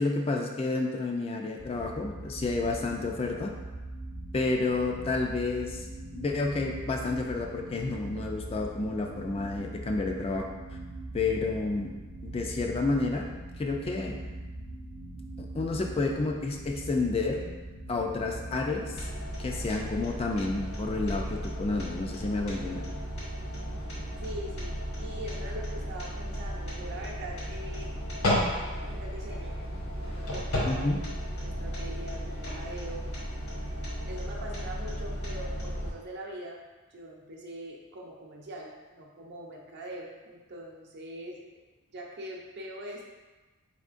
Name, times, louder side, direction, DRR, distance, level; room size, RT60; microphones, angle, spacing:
voice 1, 0.0-3.5 4.3-5.9 6.1-10.8 11.1-11.9 12.2-13.3 13.6-14.2 15.4-17.4 17.9-19.0 19.4-22.8 30.7-31.0, left 3 dB, 25° left, 1 dB, 0.3 m, -30 dB
sound 1, 1.6-19.0, right 1 dB, 85° right, 0.6 m, -41 dB
sound 2, 18.9-35.9, equal, 80° left, 1.2 m, -34 dB
voice 2, 24.2-27.9 28.5-29.6 30.0-30.9 31.3-33.0 34.1-36.6 36.9-41.4 41.9-43.0, right 1 dB, 50° right, -2 dB, 0.7 m, -42 dB
4.4 x 3.5 x 2.5 m, 1.2 s
head